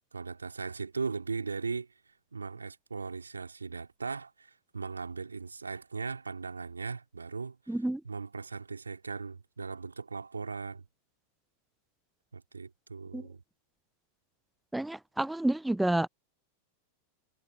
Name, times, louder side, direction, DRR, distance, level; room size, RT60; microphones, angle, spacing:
voice 1, 0.1-1.9 2.3-7.8 8.0-10.8 12.3-13.4, right 4 dB, 75° right, 4.1 m, -38 dB
voice 2, 7.7-8.0 13.1-13.3 14.7-16.1, right 1 dB, 5° right, 0.4 m, -29 dB
figure-of-eight pair, 90°, 0 cm